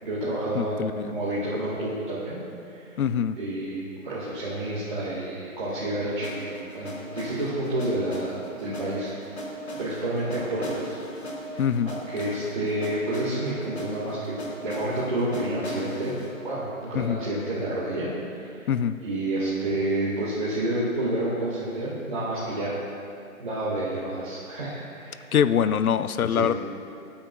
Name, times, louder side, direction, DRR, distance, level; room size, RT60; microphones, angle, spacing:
voice 1, 0.0-2.4 2.7-3.0 3.3-9.4 9.7-11.0 11.5-16.1 16.4-18.6 19.0-22.8 23.4-25.2 26.3-26.5, right 1 dB, 35° right, -9 dB, 1.7 m, -29 dB
voice 2, 0.5-1.1 3.0-3.4 11.6-11.9 16.9-17.2 18.7-19.0 25.3-26.5, left 8 dB, 80° left, 13 dB, 0.6 m, -23 dB
sound 1, 6.2-18.1, right 1 dB, 50° left, 1.6 m, -38 dB
18.0 x 8.7 x 2.3 m, 2.5 s
hypercardioid pair, 175°, 43 cm